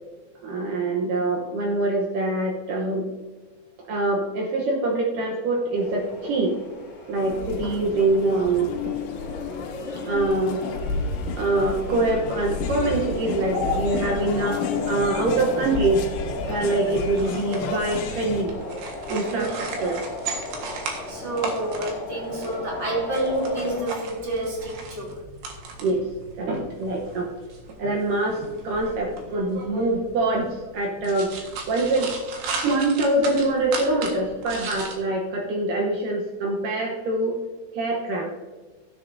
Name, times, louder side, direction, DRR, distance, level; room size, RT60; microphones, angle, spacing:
voice 1, 0.4-3.1 3.9-6.5 7.1-9.0 10.0-10.7 11.4-14.6 14.9-16.0 16.4-18.6 19.1-20.1 21.6-21.9 25.8-26.1 26.4-27.3 27.8-32.1 32.6-37.4 37.7-38.3, right 2 dB, 85° right, 0 dB, 1.8 m, -24 dB
sound 1, 5.7-23.8, left 2 dB, 45° left, 2.6 m, -37 dB
sound 2, 7.2-18.4, left 4 dB, 80° left, 3.1 m, -31 dB
sound 3, 16.9-34.9, right 4 dB, 65° right, 3.2 m, -37 dB
voice 2, 19.3-19.6 21.1-25.2, right 1 dB, 20° right, -4 dB, 2.5 m, -29 dB
16.0 x 7.9 x 2.6 m, 1.3 s
omnidirectional pair, 5.3 m